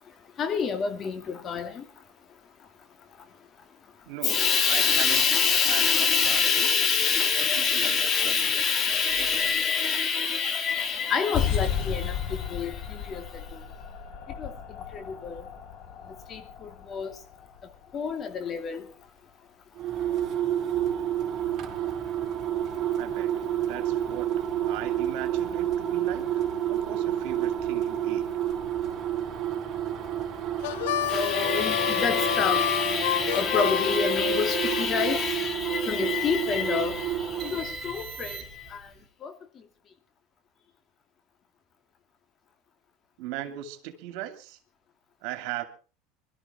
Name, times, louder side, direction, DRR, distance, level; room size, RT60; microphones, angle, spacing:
voice 1, 0.4-1.8 4.2-13.2 14.4-14.5 14.9-15.4 16.3-17.1 17.9-18.8 31.1-38.4 38.7-38.8 39.2-39.3, left 6 dB, 35° left, 2.6 m, -26 dB
voice 2, 4.1-5.3 5.7-6.7 7.4-8.5 9.2-9.5 23.0-23.3 23.7-24.3 24.7-26.4 26.7-28.3 43.2-44.6 45.2-45.6, right 13 dB, 65° right, 2.5 m, -38 dB
sound 1, 11.3-18.4, left 8 dB, 55° left, 4.2 m, -34 dB
sound 2, 19.8-38.8, right 10 dB, 35° right, 3.9 m, -30 dB
Harmonica, 30.6-34.9, left 12 dB, 80° left, 0.8 m, -29 dB
22.0 x 13.0 x 4.3 m
supercardioid pair, 105°, 0 cm